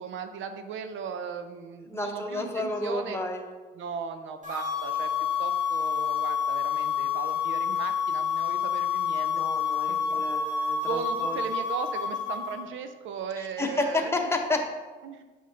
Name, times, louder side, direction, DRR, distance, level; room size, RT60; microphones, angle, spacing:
voice 1, 0.0-3.2 3.8-9.3 9.9-10.2 10.9-14.3 15.0-15.2, right 6 dB, 75° right, 8 dB, 0.6 m, -37 dB
voice 2, 1.9-3.4 9.3-11.4 13.4-14.7, left 2 dB, 10° left, 2 dB, 0.9 m, -31 dB
sound 1, 4.4-12.6, left 7 dB, 40° right, 2.1 m, -28 dB
7.3 x 5.5 x 3.3 m, 1.3 s
cardioid pair, 90°, 20 cm